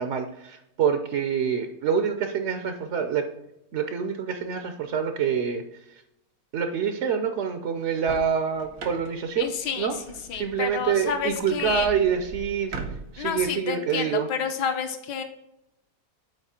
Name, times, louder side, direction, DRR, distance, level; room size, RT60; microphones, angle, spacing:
voice 1, 0.0-3.2 3.7-5.6 6.5-9.5 9.8-9.9 10.3-12.7 13.1-14.3, right 7 dB, 65° right, 7 dB, 0.7 m, -26 dB
sound 1, 7.8-13.5, right 5 dB, 80° right, 1.7 m, -41 dB
voice 2, 9.4-12.0 13.2-15.2, left 7 dB, 70° left, 7 dB, 1.5 m, -30 dB
8.1 x 4.4 x 4.3 m, 0.83 s
omnidirectional pair, 2.0 m